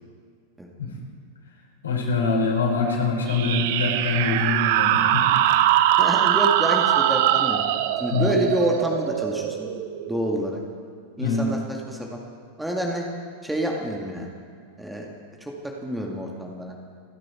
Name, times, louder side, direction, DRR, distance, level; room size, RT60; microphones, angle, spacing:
voice 1, 1.8-5.3 8.1-8.3 11.2-11.5, left 4 dB, 70° left, -2 dB, 4.8 m, -24 dB
sound 1, 3.3-10.5, right 12 dB, 50° right, 0.7 m, -22 dB
voice 2, 6.0-7.6 8.0-9.7 10.1-10.6 11.2-12.2 12.6-13.1 13.4-14.3 14.8-15.1 15.4-15.5 15.8-16.7, right 1 dB, 5° right, 0 dB, 2.0 m, -27 dB
29.5 x 10.5 x 4.5 m, 2.2 s
figure-of-eight pair, 90°, 0 cm